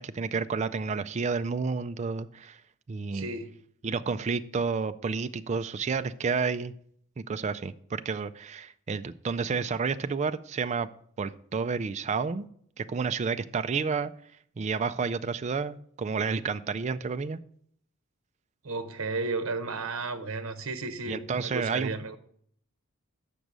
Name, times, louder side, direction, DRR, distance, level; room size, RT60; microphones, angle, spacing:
voice 1, 0.0-2.6 2.9-3.3 3.8-6.7 7.2-10.9 11.2-12.5 12.8-14.1 14.6-17.4 21.1-21.9, right 5 dB, 35° right, 0.3 m, -30 dB
voice 2, 3.1-3.5 18.6-22.2, right 3 dB, 65° right, 0.9 m, -33 dB
6.7 x 6.2 x 6.2 m
head